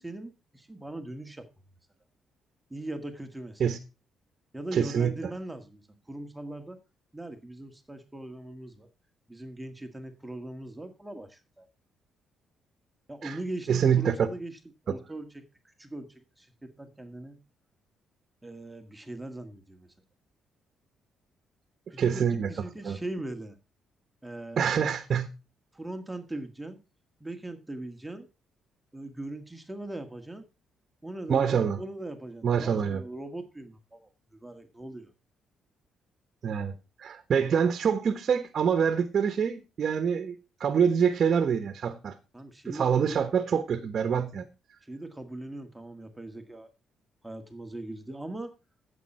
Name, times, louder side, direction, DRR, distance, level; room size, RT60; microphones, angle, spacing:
voice 1, 0.0-1.5 2.7-3.7 4.5-5.8 6.1-6.8 7.1-8.9 9.3-11.7 13.1-14.6 14.9-17.4 18.4-19.9 21.9-23.6 24.2-24.6 25.7-26.8 27.2-28.3 28.9-30.5 31.0-34.1 34.4-35.1 42.3-43.2 44.9-46.7 47.2-48.5, right 2 dB, 10° right, 1.8 m, -40 dB
voice 2, 4.7-5.1 13.2-13.4 13.7-14.3 22.0-22.5 22.8-23.0 24.6-25.3 31.3-31.8 32.4-33.0 36.4-36.7 37.0-42.1 42.7-44.4, right 7 dB, 55° right, 1.2 m, -25 dB
14.5 x 7.4 x 4.3 m
cardioid pair, 90°, 0 cm